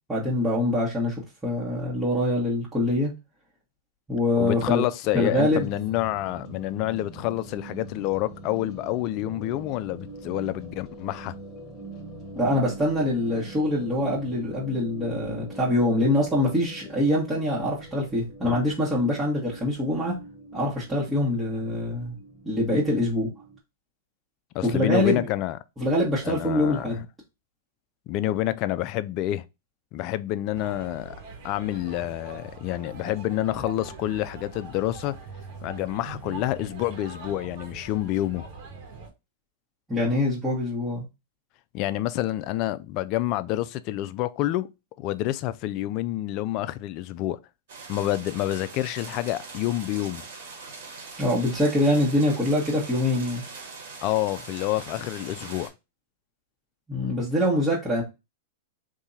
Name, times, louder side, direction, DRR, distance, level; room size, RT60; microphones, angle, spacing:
voice 1, 0.1-3.1 4.1-4.8 5.1-5.7 12.3-20.2 20.5-22.1 22.4-23.3 24.6-25.3 25.8-27.0 39.9-41.0 51.2-53.4 56.9-58.0, left 1 dB, 10° right, 1.5 m, -24 dB
voice 2, 4.4-11.3 18.4-18.6 24.5-25.6 26.2-26.9 28.1-29.4 29.9-31.2 31.4-35.1 35.6-38.4 41.7-44.7 45.0-47.4 47.9-50.2 54.0-55.7, left 15 dB, 45° left, 0.4 m, -28 dB
sound 1, 5.5-23.6, right 2 dB, 25° left, 1.5 m, -43 dB
sound 2, 30.5-39.1, right 4 dB, 50° right, 1.5 m, -42 dB
sound 3, 47.7-55.7, right 4 dB, 70° right, 1.8 m, -42 dB
3.6 x 2.7 x 4.1 m
hypercardioid pair, 125°, 0 cm